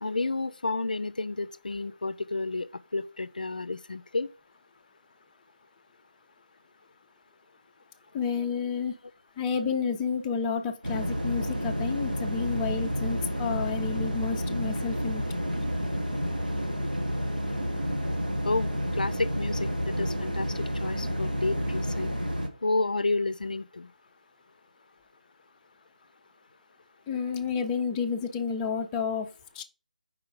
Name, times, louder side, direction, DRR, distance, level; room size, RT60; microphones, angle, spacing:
voice 1, 0.0-4.3 18.4-19.7 20.0-22.1 22.6-23.9, left 3 dB, 75° left, 0.4 m, -30 dB
voice 2, 8.1-8.9 9.4-15.2 27.1-29.3 29.5-29.6, left 6 dB, 15° left, 0.5 m, -30 dB
sound 1, 10.8-22.5, equal, 85° right, 1.5 m, -30 dB
4.8 x 4.7 x 5.1 m
figure-of-eight pair, 155°, 5 cm